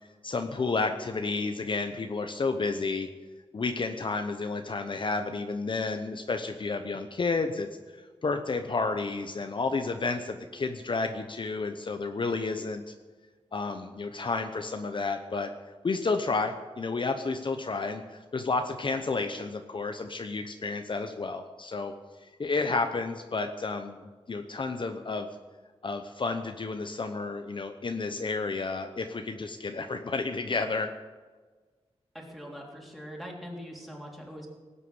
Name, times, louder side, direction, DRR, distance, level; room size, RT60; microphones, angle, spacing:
voice 1, 0.2-3.1 3.5-7.7 7.9-12.9 13.5-15.5 15.8-21.9 22.2-25.3 25.8-30.9, left 3 dB, 50° left, 6 dB, 0.9 m, -31 dB
voice 2, 32.1-34.5, equal, ahead, -1 dB, 3.3 m, -42 dB
18.5 x 8.3 x 8.0 m, 1.4 s
wide cardioid pair, 135°, 11 cm